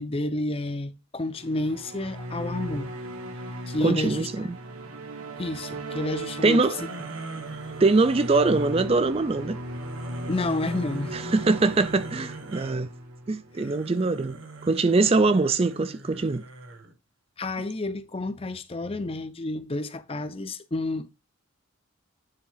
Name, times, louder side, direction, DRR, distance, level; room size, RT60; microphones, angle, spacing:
voice 1, 0.0-2.9 3.7-4.3 5.4-6.6 10.3-11.2 13.6-13.7 17.4-21.1, left 2 dB, 25° left, 0.6 m, -30 dB
sound 1, 1.3-13.8, right 1 dB, 85° right, 1.5 m, -37 dB
voice 2, 3.8-4.5 6.4-6.8 7.8-9.6 11.1-12.9 13.3-14.4 14.7-16.4, right 3 dB, 25° right, 0.4 m, -22 dB
sound 2, 6.8-8.8 9.6-12.8 13.5-16.9, right 2 dB, 65° right, 1.6 m, -41 dB
9.8 x 4.0 x 3.9 m
head